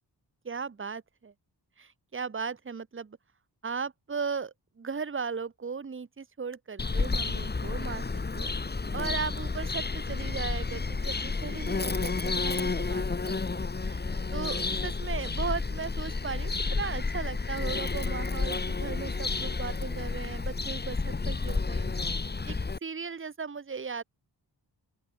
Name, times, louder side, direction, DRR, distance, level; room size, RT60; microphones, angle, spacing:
voice 1, 0.4-1.3 1.8-3.2 3.6-8.0 8.3-8.5 8.9-13.4 13.9-14.0 14.3-21.9 22.5-22.6 22.8-24.0, right 5 dB, 30° right, 0.9 m, -37 dB
Bird vocalization bird call bird song, 6.8-22.8, left 4 dB, 25° left, 1.0 m, -31 dB
open air
wide cardioid pair, 105°, 42 cm